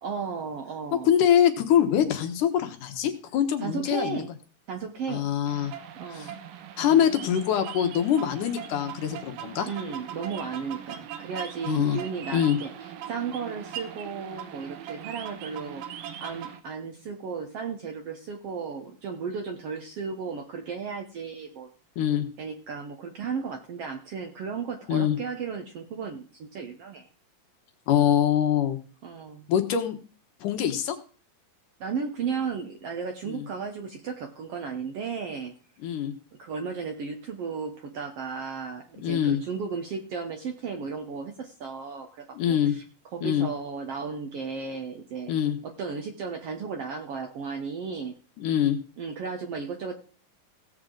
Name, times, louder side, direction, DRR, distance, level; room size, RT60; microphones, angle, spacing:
voice 1, 0.0-1.1 3.6-4.3 4.7-5.3 6.0-6.3 9.6-21.7 22.4-27.1 29.0-29.5 31.8-35.5 36.4-42.8 43.1-45.3 45.6-48.1 49.0-49.9, right 5 dB, 65° right, 4 dB, 1.6 m, -34 dB
voice 2, 1.0-4.3 5.1-5.7 6.1-6.3 6.8-9.7 11.7-12.0 12.3-12.6 22.0-22.3 24.9-25.2 27.9-28.8 29.5-30.0 30.4-31.0 33.3-33.5 35.8-36.1 39.0-39.4 42.4-42.8 43.2-43.5 45.3-45.6 48.4-48.8, left 9 dB, 75° left, 7 dB, 2.6 m, -24 dB
sound 1, 5.5-16.6, right 9 dB, 85° right, 2.7 m, -40 dB
17.0 x 7.8 x 3.9 m, 0.40 s
omnidirectional pair, 3.8 m